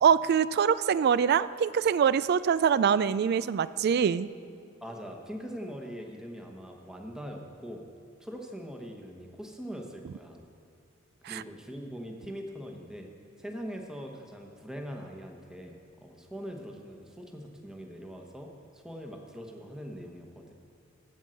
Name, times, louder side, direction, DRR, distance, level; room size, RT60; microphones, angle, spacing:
voice 1, 0.0-4.3 11.2-11.4, right 7 dB, 55° right, 17 dB, 0.3 m, -24 dB
voice 2, 4.8-7.9 8.2-10.5 11.3-13.1 13.4-20.5, equal, 5° right, 2 dB, 1.1 m, -42 dB
15.5 x 5.4 x 7.6 m, 2.3 s
head